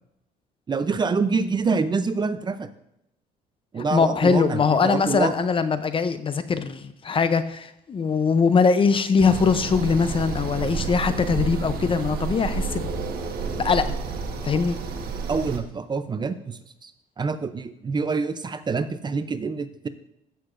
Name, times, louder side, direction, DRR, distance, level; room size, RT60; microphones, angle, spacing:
voice 1, 0.7-2.7 3.7-5.3 15.3-16.9 17.2-19.9, right 4 dB, 25° right, 11 dB, 0.5 m, -26 dB
voice 2, 3.9-12.9 13.6-13.9 14.4-14.8, left 5 dB, 30° left, 11 dB, 0.6 m, -22 dB
sound 1, 9.2-15.6, right 5 dB, 60° right, 1.4 m, -30 dB
15.0 x 6.6 x 2.6 m, 0.80 s
cardioid pair, 110°, 17 cm